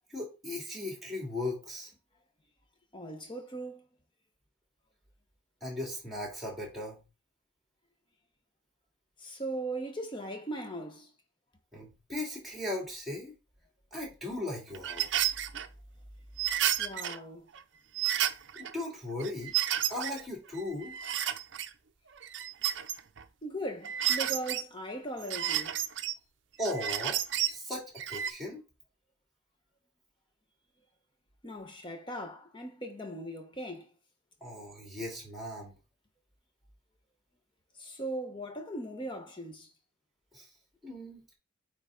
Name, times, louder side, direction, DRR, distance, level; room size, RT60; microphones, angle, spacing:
voice 1, 0.1-1.9 5.6-7.0 11.7-13.3 13.9-15.3 18.6-19.6 19.9-20.9 26.6-27.2 27.5-27.8 28.1-28.6 34.4-35.7 40.3-40.5 40.8-41.2, left 1 dB, ahead, 2.6 m, -37 dB
voice 2, 2.9-3.9 9.2-11.1 16.8-17.5 23.4-25.8 31.4-33.9 37.7-39.7, right 1 dB, 25° left, 1.1 m, -39 dB
sound 1, 14.7-15.7 16.4-17.2 17.6-17.7 18.0-18.7 19.2-20.2 20.5-21.7 22.2-23.2 23.8-24.6 25.2-26.1 26.6-27.5 28.0-28.3, right 11 dB, 55° right, 0.5 m, -31 dB
8.9 x 3.7 x 3.9 m
head